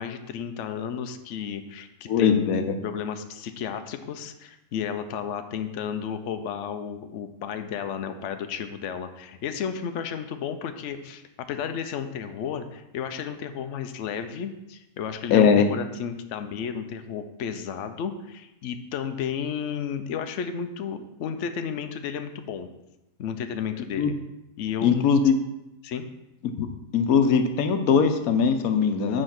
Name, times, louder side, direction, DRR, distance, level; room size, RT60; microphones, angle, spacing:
voice 1, 0.0-11.2 11.5-22.7 23.2-24.1 24.6-25.3 25.8-26.1, left 7 dB, 65° left, 8 dB, 0.9 m, -32 dB
voice 2, 2.1-2.6 15.3-15.7 24.0-24.1 24.8-25.3 26.9-29.2, left 6 dB, 85° left, 8 dB, 1.2 m, -20 dB
7.9 x 4.7 x 5.9 m, 0.91 s
omnidirectional pair, 1.4 m